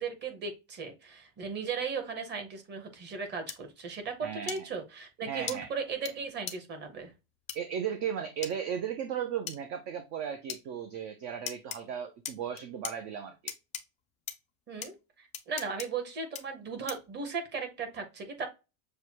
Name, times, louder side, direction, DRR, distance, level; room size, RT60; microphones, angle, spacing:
voice 1, 0.0-7.1 14.7-18.5, right 5 dB, 25° right, 1.2 m, -37 dB
sound 1, 3.5-3.6 4.5-4.6 5.5-5.6 6.1-6.2 6.5-6.6 7.5-7.6 8.4-8.5 9.5-9.6 10.5-10.6 11.5-11.8 12.2-12.9 13.5-13.8 14.3-14.4 14.8-14.9 15.3-15.9 16.3-16.4 16.9-17.1, left 8 dB, 20° left, 0.3 m, -38 dB
voice 2, 4.2-4.7 5.3-5.7 7.5-13.5, right 8 dB, 40° right, 0.7 m, -36 dB
6.7 x 2.2 x 2.9 m
supercardioid pair, 150°, 41 cm